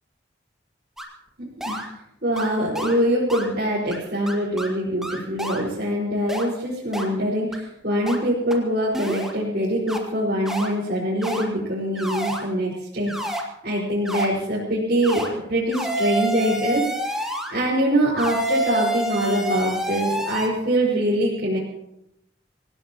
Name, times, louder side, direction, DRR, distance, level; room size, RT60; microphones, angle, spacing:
sound 1, 1.0-1.1 1.6-1.9 2.4-2.5 2.7-2.9 3.3-3.5 3.9-4.0 4.3-4.7 5.0-5.6 6.3-6.4 6.9-7.1 7.5-7.6 8.1-8.2 8.5-8.6 8.9-9.3 9.9-10.0 10.4-10.7 11.2-11.4 12.0-12.4 13.1-13.4 14.0-14.3 15.0-15.3 15.7-17.5 18.2-20.5, right 1 dB, 5° right, 2.1 m, -28 dB
voice 1, 1.4-1.8 2.2-21.6, right 1 dB, 55° right, -7 dB, 5.3 m, -24 dB
27.0 x 17.5 x 3.1 m, 0.82 s
head